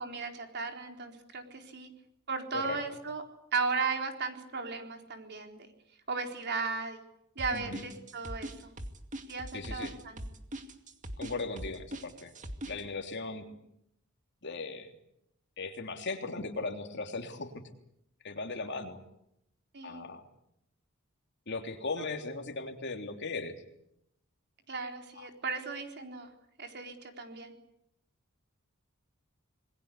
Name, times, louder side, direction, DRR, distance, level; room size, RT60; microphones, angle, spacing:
voice 1, 0.0-1.9 2.3-3.2 3.5-5.7 6.1-7.0 7.4-8.7 9.3-10.2 19.7-20.0 24.7-26.3 26.6-27.5, right 4 dB, 55° right, 4 dB, 4.0 m, -36 dB
sound 1, 7.4-12.8, right 1 dB, 40° right, 2.3 m, -40 dB
voice 2, 7.5-7.8 9.5-9.9 11.2-12.3 12.6-13.4 14.4-14.9 15.6-17.6 18.2-19.0 19.8-20.2 21.5-23.6 25.1-25.3, left 3 dB, 55° left, 5 dB, 3.2 m, -38 dB
27.5 x 21.0 x 8.4 m, 0.79 s
head